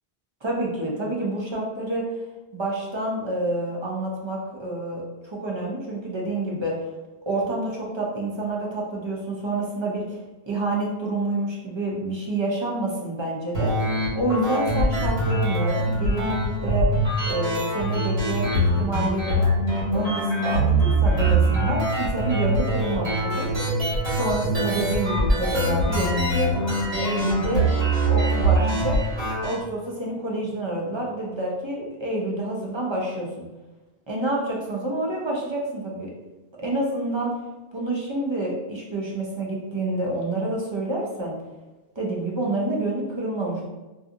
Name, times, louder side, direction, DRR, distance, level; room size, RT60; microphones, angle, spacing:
voice 1, 0.4-2.0 2.5-6.8 7.3-10.2 10.5-13.7 14.1-16.9 17.3-19.4 19.9-23.5 24.1-26.6 27.0-27.7 28.1-29.0 29.4-33.4 34.1-36.1 36.6-37.3 37.7-41.3 42.0-43.7, right 2 dB, 45° right, -3 dB, 0.4 m, -28 dB
sound 1, 13.5-29.5, right 1 dB, 85° right, 1.5 m, -23 dB
2.7 x 2.4 x 2.5 m, 1.1 s
omnidirectional pair, 1.0 m